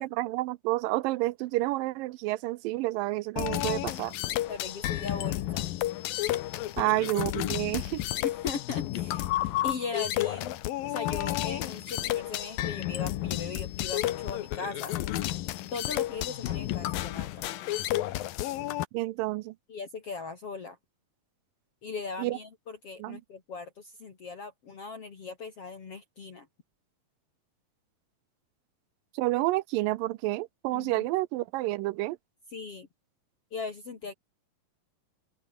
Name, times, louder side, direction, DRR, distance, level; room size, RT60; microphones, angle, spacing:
voice 1, 0.0-4.1 6.8-8.0 18.9-19.5 22.2-22.4 23.0-23.2 29.2-32.2, right 18 dB, 90° right, 2.3 m, -29 dB
sound 1, 3.4-18.9, left 14 dB, 90° left, 2.9 m, -31 dB
voice 2, 4.5-5.7 6.8-6.9 8.2-9.3 9.6-10.6 10.8-14.9 15.7-17.4 19.7-20.8 21.8-26.5 30.7-31.1 32.5-32.9 33.5-34.1, left 4 dB, 45° left, 3.4 m, -39 dB
omnidirectional pair, 4.0 m